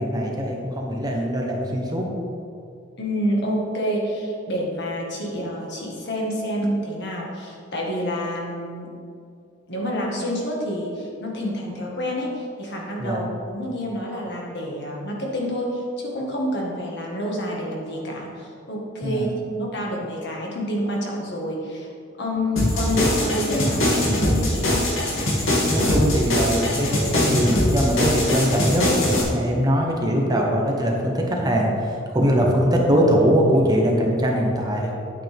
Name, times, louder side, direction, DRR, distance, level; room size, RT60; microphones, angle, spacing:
voice 1, 0.0-2.1 13.0-13.3 19.0-19.3 25.7-28.9 29.3-34.9, equal, 20° right, 0 dB, 1.2 m, -21 dB
voice 2, 3.0-8.9 9.7-19.3 19.5-21.9 22.2-24.9 32.2-32.3, equal, 60° left, -2 dB, 1.9 m, -28 dB
sound 1, 22.6-29.2, left 1 dB, 85° left, 2.5 m, -22 dB
9.7 x 8.8 x 3.7 m, 2.4 s
head